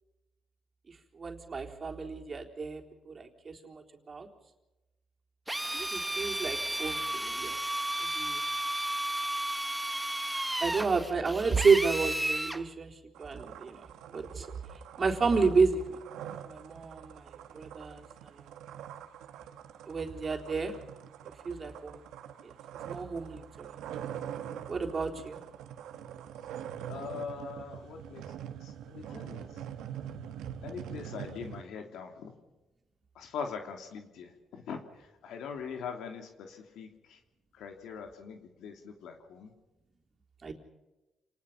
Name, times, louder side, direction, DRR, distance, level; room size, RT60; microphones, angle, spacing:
voice 1, 0.9-4.3 5.7-7.6 8.0-8.4 10.6-14.5 15.0-16.0 16.4-18.0 18.3-18.5 19.9-20.8 21.4-22.0 22.4-22.5 22.8-23.7 24.7-25.4 40.4-40.5, right 4 dB, 40° right, 2 dB, 3.9 m, -31 dB
Drill, 5.5-12.6, right 1 dB, 10° right, 1.2 m, -33 dB
sound 1, 13.1-31.6, right 9 dB, 85° right, 1.8 m, -44 dB
voice 2, 26.9-28.3 28.6-29.6 30.6-32.3 33.1-37.2 37.5-39.5, left 6 dB, 80° left, 4 dB, 2.9 m, -42 dB
29.0 x 20.0 x 5.8 m, 1.0 s
cardioid pair, 90°, 0 cm